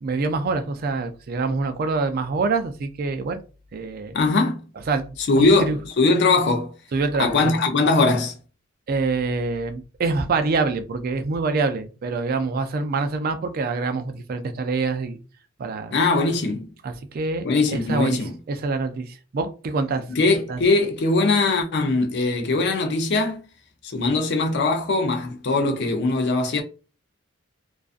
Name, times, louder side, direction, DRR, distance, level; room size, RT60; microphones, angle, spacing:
voice 1, 0.0-3.4 3.7-4.1 4.9-5.2 5.6-5.8 6.9-7.6 8.9-15.2 15.6-16.0 16.8-17.5 17.7-20.0 20.5-20.6, right 3 dB, 45° right, 0.3 m, -25 dB
voice 2, 4.1-4.6 5.3-6.7 7.2-8.3 15.9-16.7 17.4-18.3 20.1-23.4 23.9-26.6, left 3 dB, 55° left, 0.5 m, -21 dB
2.4 x 2.3 x 2.4 m
head